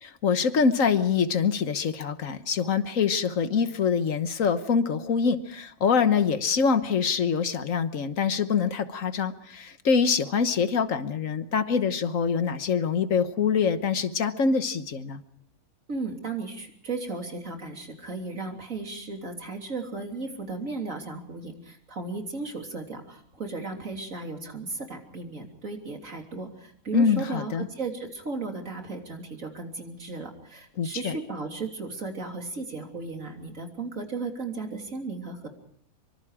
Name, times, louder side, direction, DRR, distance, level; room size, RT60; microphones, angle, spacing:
voice 1, 0.0-15.2 26.9-27.7 30.8-31.1, left 6 dB, 70° left, 11 dB, 1.5 m, -25 dB
voice 2, 15.9-35.5, right 3 dB, 65° right, 3 dB, 3.6 m, -35 dB
25.0 x 24.5 x 4.9 m, 0.62 s
omnidirectional pair, 1.5 m